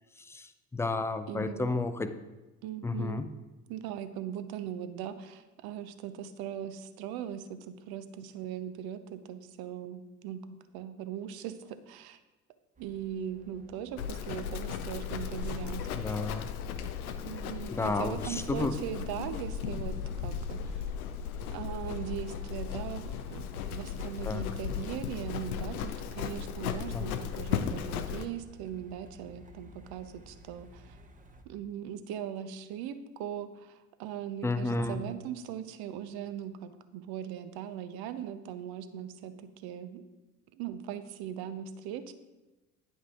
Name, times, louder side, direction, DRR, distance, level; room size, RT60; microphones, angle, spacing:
voice 1, 0.2-2.1 2.8-3.3 15.9-16.5 17.7-18.8 24.2-24.4 26.9-27.2 34.4-35.0, left 3 dB, 5° left, 10 dB, 0.4 m, -32 dB
voice 2, 1.3-1.7 2.6-3.2 3.7-10.4 10.7-12.2 12.8-15.9 17.2-20.9 21.5-31.0 31.5-40.0 40.5-42.1, right 10 dB, 60° right, 11 dB, 0.7 m, -40 dB
Truck, 12.8-31.4, left 1 dB, 20° right, 0.9 m, -56 dB
Livestock farm animals working animals, 14.0-28.3, left 8 dB, 85° left, 0.6 m, -36 dB
9.5 x 5.4 x 3.7 m, 1.1 s
hypercardioid pair, 55°, 43 cm